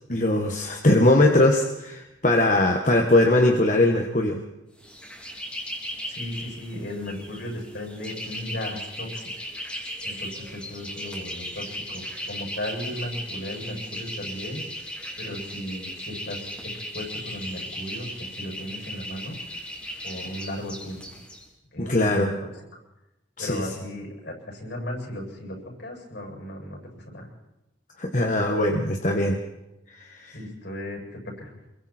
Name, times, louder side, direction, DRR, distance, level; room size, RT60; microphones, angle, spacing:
voice 1, 0.1-4.4 21.8-22.4 23.4-23.7 28.0-29.4 30.0-30.4, left 1 dB, 40° left, 2 dB, 1.6 m, -21 dB
sound 1, 4.8-21.4, equal, 5° left, 3.5 m, -37 dB
voice 2, 6.1-9.3 10.0-14.9 15.2-19.4 20.0-21.0 21.7-22.3 22.7-22.8 23.4-27.3 30.3-31.5, left 1 dB, 65° left, 0 dB, 7.4 m, -36 dB
27.5 x 23.0 x 4.5 m, 0.97 s
head